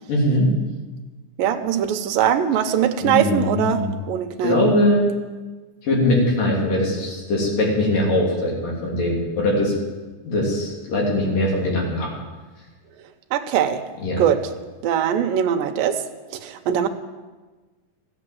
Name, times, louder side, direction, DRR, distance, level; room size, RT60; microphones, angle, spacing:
voice 1, 0.1-0.5 3.0-4.0 4.4-5.1 5.8-9.7 10.2-12.1 14.0-14.2, left 1 dB, 65° left, -3 dB, 4.9 m, -21 dB
voice 2, 1.4-4.6 13.3-13.8 14.2-14.4 14.8-16.0 16.3-16.9, right 9 dB, 80° right, 6 dB, 2.5 m, -21 dB
14.0 x 8.4 x 7.7 m, 1.3 s
omnidirectional pair, 4.2 m